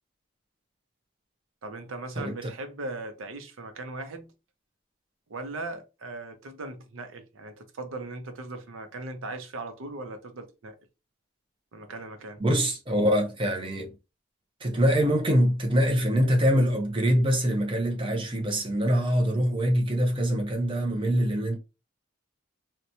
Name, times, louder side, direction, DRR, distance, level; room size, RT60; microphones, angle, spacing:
voice 1, 1.6-4.3 5.3-10.8 11.7-12.4, right 2 dB, 80° right, 0.6 m, -38 dB
voice 2, 2.2-2.5 12.4-13.9 14.6-21.6, equal, 25° right, 0.6 m, -24 dB
2.9 x 2.2 x 2.6 m
head